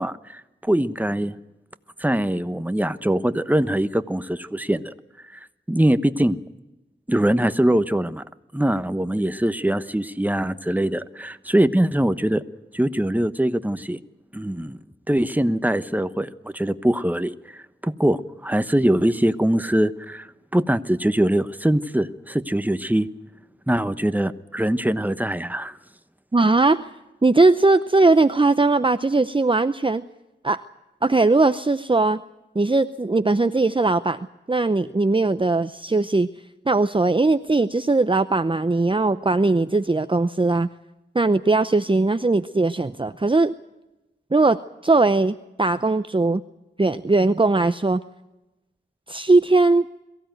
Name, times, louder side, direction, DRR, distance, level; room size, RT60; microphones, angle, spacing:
voice 1, 0.0-1.3 2.0-4.9 5.7-6.4 7.1-8.2 8.5-12.4 12.7-14.0 14.3-14.8 15.1-20.3 20.5-23.1 23.7-25.8, right 1 dB, 10° right, 11 dB, 1.1 m, -22 dB
voice 2, 26.3-26.9 27.2-30.0 30.4-30.6 31.0-32.2 32.5-34.2 34.5-36.3 36.7-40.7 41.1-43.5 44.3-46.4 46.8-48.0 49.1-49.8, right 3 dB, 25° right, 11 dB, 0.7 m, -19 dB
23.0 x 15.5 x 9.2 m, 1.0 s
wide cardioid pair, 45°, 19 cm